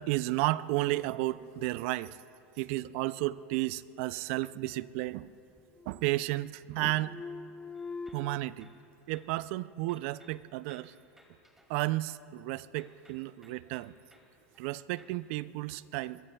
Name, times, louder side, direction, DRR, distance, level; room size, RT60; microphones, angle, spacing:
voice 1, 0.0-2.2 2.6-5.3 5.9-7.2 8.1-8.7 9.1-10.9 11.7-13.9 14.6-16.2, right 17 dB, 65° right, 18 dB, 0.4 m, -32 dB
sound 1, 4.3-5.3 5.6-6.5 6.8-8.4, left 4 dB, 15° left, 0.4 m, -44 dB
sound 2, 7.7-9.4 9.8-12.4 12.8-15.2, equal, 5° right, 2.4 m, -64 dB
22.5 x 22.0 x 2.3 m, 2.7 s
hypercardioid pair, 105°, 7 cm